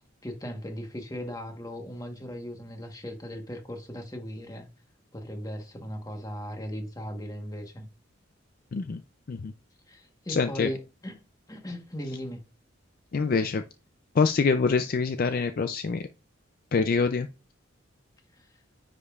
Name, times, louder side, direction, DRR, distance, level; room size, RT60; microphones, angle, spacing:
voice 1, 0.2-4.7 5.1-7.9 9.9-11.2 11.5-12.4 18.3-18.5, equal, 20° left, 1.1 m, -38 dB
voice 2, 10.3-10.7 13.1-13.6 14.1-16.1 16.7-17.3, left 4 dB, 45° left, 0.4 m, -25 dB
9.6 x 5.1 x 2.4 m
head